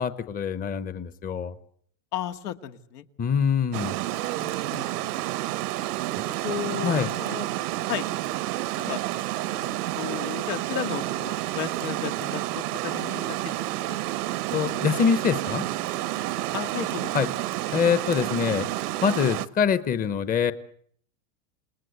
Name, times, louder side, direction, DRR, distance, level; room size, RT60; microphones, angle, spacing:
voice 1, 0.0-1.5 3.2-4.0 6.8-7.1 8.9-9.0 14.5-15.6 17.1-17.3 17.7-18.7 19.0-20.5, left 7 dB, 20° left, 13 dB, 1.0 m, -24 dB
voice 2, 2.1-3.1 4.4-5.1 6.4-7.5 7.9-8.1 8.9-9.0 9.5-14.0 16.5-17.1, left 11 dB, 80° left, 7 dB, 2.1 m, -34 dB
Water, 3.7-19.5, right 15 dB, 85° right, 1.2 m, -30 dB
28.5 x 19.5 x 8.1 m, 0.63 s
supercardioid pair, 135°, 45 cm